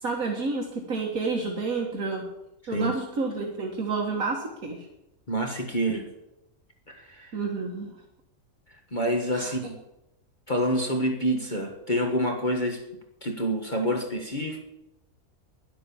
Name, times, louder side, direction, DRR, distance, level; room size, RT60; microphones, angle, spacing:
voice 1, 0.0-2.3 2.7-4.9 7.3-7.9 9.3-9.5, right 4 dB, 70° right, 0 dB, 2.1 m, -30 dB
voice 2, 5.3-6.1 6.9-7.4 8.9-9.8 10.5-12.8 13.2-14.6, equal, 30° left, 2 dB, 1.7 m, -27 dB
11.5 x 11.0 x 7.1 m, 0.89 s
omnidirectional pair, 1.6 m